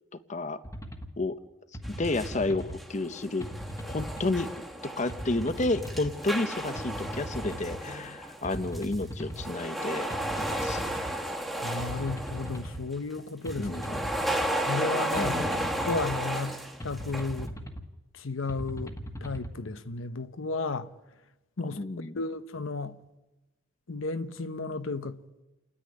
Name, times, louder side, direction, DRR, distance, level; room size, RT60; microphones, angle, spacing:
sound 1, 0.6-1.1 1.7-2.8 3.4-4.4 5.1-6.1 6.8-7.8 8.4-9.5 10.1-11.1 11.8-12.8 13.5-14.5 15.1-16.2 16.8-17.8 18.5-19.5, equal, 15° left, 1.4 m, -39 dB
sound 2, 1.8-2.4 2.7-9.0 9.3-12.7 13.5-17.5, right 1 dB, ahead, 1.5 m, -34 dB
voice 1, 1.9-3.5 3.8-4.5 5.0-10.8 13.6-14.0 15.2-15.6 21.7-22.2, left 2 dB, 35° left, 0.7 m, -31 dB
voice 2, 11.6-13.7 14.7-17.5 18.1-20.9 21.6-23.0 23.9-25.2, left 3 dB, 75° left, 0.9 m, -34 dB
29.0 x 10.0 x 9.7 m
head